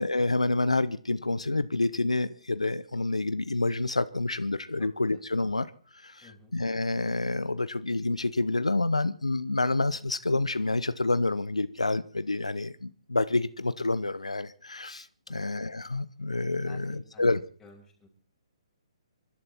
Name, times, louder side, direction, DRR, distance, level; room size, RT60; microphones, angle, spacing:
voice 1, 0.0-5.7 6.0-17.4, left 2 dB, 90° left, 14 dB, 0.9 m, -28 dB
voice 2, 6.2-6.5 15.3-15.5 16.6-17.3 17.6-18.1, left 3 dB, 10° left, -1 dB, 6.0 m, -52 dB
25.5 x 12.5 x 4.4 m, 0.40 s
figure-of-eight pair, 135°, 3 cm